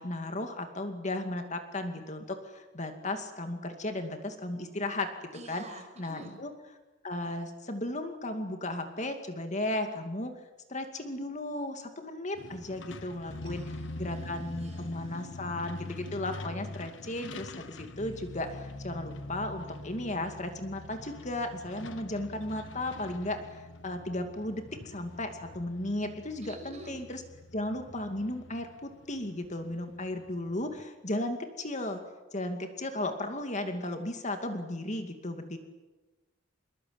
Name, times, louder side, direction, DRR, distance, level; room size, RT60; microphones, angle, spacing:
voice 1, 0.0-5.1 5.5-5.6 6.0-6.5 7.0-10.3 10.7-13.6 14.0-27.2 27.5-32.0 32.3-35.6, left 1 dB, 40° left, 6 dB, 2.4 m, -35 dB
voice 2, 5.3-6.4 13.4-15.3 26.4-27.0, right 1 dB, 35° right, 3 dB, 6.5 m, -49 dB
Truck, 12.4-30.8, left 2 dB, 85° left, 1.3 m, -45 dB
25.5 x 22.0 x 8.9 m, 1.2 s
head